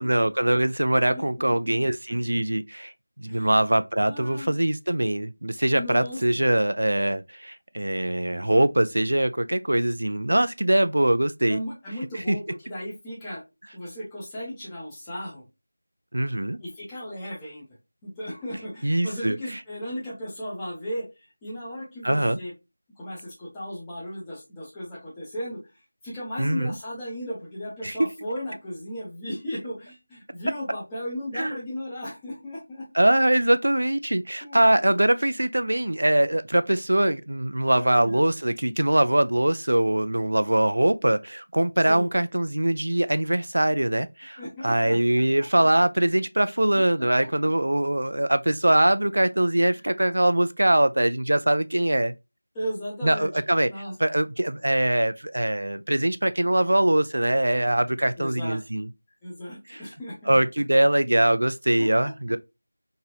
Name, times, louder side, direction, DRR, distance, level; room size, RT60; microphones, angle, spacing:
voice 1, 0.0-2.9 3.2-11.6 12.3-12.4 16.1-16.6 18.8-19.4 22.0-22.4 26.4-26.7 27.8-28.0 31.3-31.6 32.9-52.1 53.0-53.7 54.0-58.9 59.7-59.8 60.3-62.4, right 1 dB, 70° right, 0.3 m, -22 dB
voice 2, 1.0-1.8 3.3-3.5 4.1-4.6 5.7-6.4 11.5-13.4 13.7-15.4 16.6-17.7 18.0-21.1 21.4-22.5 23.0-25.6 26.0-32.9 34.4-34.9 37.6-38.3 41.8-42.1 44.4-45.2 46.7-46.8 49.5-49.9 52.5-53.3 53.7-53.9 58.2-58.6 59.2-60.4 61.8-61.9, equal, 10° left, 0.8 m, -35 dB
3.0 x 2.7 x 2.4 m
figure-of-eight pair, 175°, 0 cm